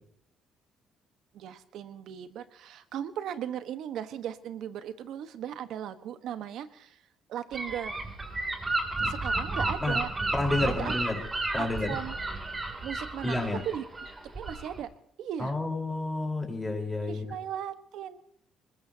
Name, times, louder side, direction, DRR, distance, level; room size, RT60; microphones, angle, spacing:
voice 1, 1.3-7.0 7.3-8.0 9.0-10.1 10.6-11.0 11.6-12.1 12.8-14.9 15.2-15.5 17.1-18.2, right 10 dB, 75° right, 11 dB, 1.3 m, -37 dB
Gull seagull / Wind, 7.5-14.8, right 2 dB, 20° right, 3.1 m, -32 dB
voice 2, 10.3-11.2 11.5-11.9 13.2-13.6 15.4-17.2, left 2 dB, 10° left, 1 dB, 4.4 m, -30 dB
21.0 x 20.5 x 2.9 m, 0.74 s
cardioid pair, 110°, 0 cm